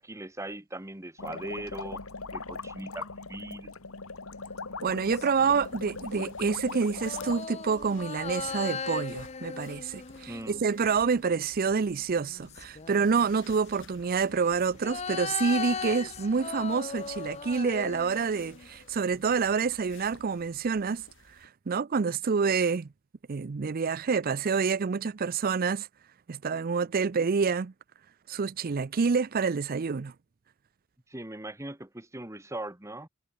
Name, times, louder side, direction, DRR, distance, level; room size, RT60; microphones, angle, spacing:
voice 1, 0.0-2.0 2.3-3.7 10.3-10.6 31.1-33.1, right 1 dB, 15° right, 1.6 m, -40 dB
sound 1, 1.2-7.4, left 4 dB, 75° left, 2.1 m, -40 dB
sound 2, 4.8-6.1 6.9-11.4 12.1-13.3 14.2-18.9 19.2-19.3, left 5 dB, 30° left, 0.8 m, -38 dB
voice 2, 4.8-21.0 21.4-22.9 23.3-25.9 26.3-27.7 28.3-30.1, right 5 dB, 45° right, 0.5 m, -27 dB
sound 3, 5.0-21.5, left 4 dB, 60° left, 1.9 m, -55 dB
head